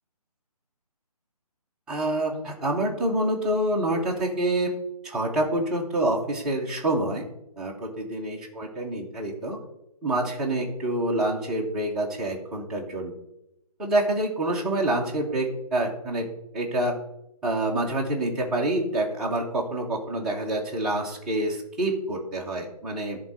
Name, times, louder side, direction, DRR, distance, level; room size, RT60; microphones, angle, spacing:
voice 1, 1.9-4.7 5.0-7.2 7.6-9.6 10.0-13.1 13.8-16.3 16.5-16.9 17.4-23.2, right 1 dB, 5° right, -4 dB, 0.6 m, -27 dB
10.5 x 3.7 x 6.2 m, 0.86 s
figure-of-eight pair, 145°, 20 cm